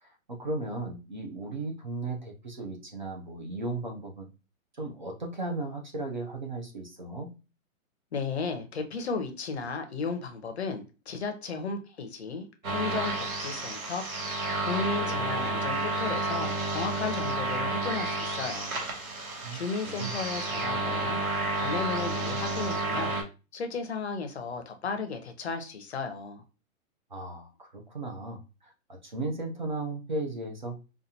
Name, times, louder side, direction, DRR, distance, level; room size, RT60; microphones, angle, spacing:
voice 1, 0.0-4.3 4.8-7.3 19.4-20.1 27.1-30.8, right 2 dB, 35° right, 0.6 m, -36 dB
voice 2, 8.1-14.1 14.3-18.8 19.5-23.2 23.5-26.4, left 5 dB, 50° left, 0.7 m, -34 dB
sound 1, 12.6-23.2, right 2 dB, 75° right, 1.9 m, -31 dB
5.2 x 2.4 x 2.7 m
hypercardioid pair, 180°, 42 cm